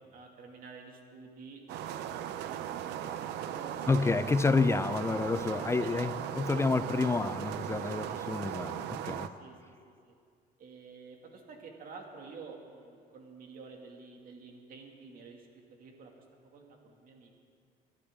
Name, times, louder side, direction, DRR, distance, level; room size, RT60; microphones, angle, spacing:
voice 1, 0.0-4.1 5.8-7.0 8.1-8.2 9.4-10.1 10.6-17.4, right 4 dB, 60° right, 2 dB, 2.2 m, -50 dB
sound 1, 1.7-9.3, right 10 dB, 85° right, 0.6 m, -38 dB
voice 2, 3.9-9.3, left 4 dB, 15° left, 14 dB, 0.4 m, -29 dB
23.5 x 11.5 x 3.7 m, 2.2 s
cardioid pair, 110°, 17 cm